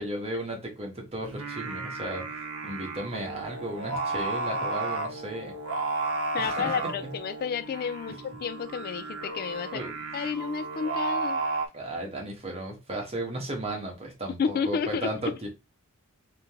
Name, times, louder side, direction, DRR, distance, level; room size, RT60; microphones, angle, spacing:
voice 1, 0.0-2.2 2.6-5.5 6.4-6.7 7.0-7.1 9.7-10.0 11.7-15.5, right 1 dB, 30° right, 1.4 m, -35 dB
Singing, 1.2-11.7, right 3 dB, 75° right, 0.8 m, -33 dB
voice 2, 6.3-9.8 10.1-11.4 14.4-15.1, left 6 dB, 45° left, 0.3 m, -31 dB
3.8 x 3.0 x 3.6 m
head